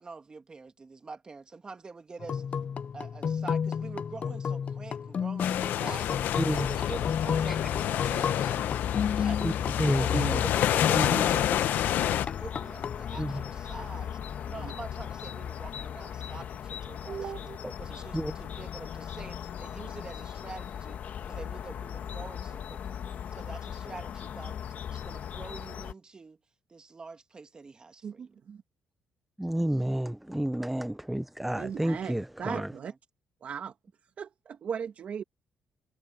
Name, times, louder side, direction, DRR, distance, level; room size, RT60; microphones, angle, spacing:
voice 1, 0.0-2.4 2.9-8.6 8.9-14.2 14.4-17.5 17.8-24.6 24.9-26.4 26.7-28.4 32.7-33.0, right 4 dB, 25° right, 2.7 m, -45 dB
sound 1, 2.2-11.9 12.3-13.6, left 7 dB, 40° left, 0.4 m, -33 dB
sound 2, 5.4-12.3, left 12 dB, 75° left, 0.9 m, -29 dB
sound 3, 6.0-25.9, left 9 dB, 60° left, 1.8 m, -37 dB
voice 2, 6.4-6.7 7.5-7.6 9.4-9.5 9.8-10.4 10.9-11.2 13.2-13.4 17.6-17.7 18.1-18.3 29.4-32.7, right 1 dB, 5° right, 0.6 m, -30 dB
voice 3, 17.1-17.6 28.0-28.6 31.5-32.9 33.4-33.7 34.2-35.2, right 7 dB, 50° right, 2.2 m, -38 dB
cardioid pair, 110°, 3 cm